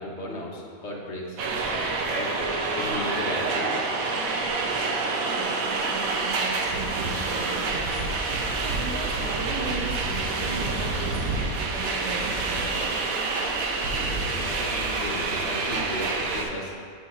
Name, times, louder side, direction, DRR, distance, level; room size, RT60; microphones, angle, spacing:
voice 1, 0.0-1.4 1.9-2.3 2.8-3.9 13.9-16.7, left 1 dB, 55° left, -2 dB, 1.2 m, -35 dB
sound 1, 1.4-16.4, right 3 dB, 85° right, 1.2 m, -27 dB
voice 2, 5.3-13.0, right 2 dB, 20° right, -8 dB, 1.8 m, -37 dB
10.0 x 6.3 x 2.4 m, 2.2 s
omnidirectional pair, 1.4 m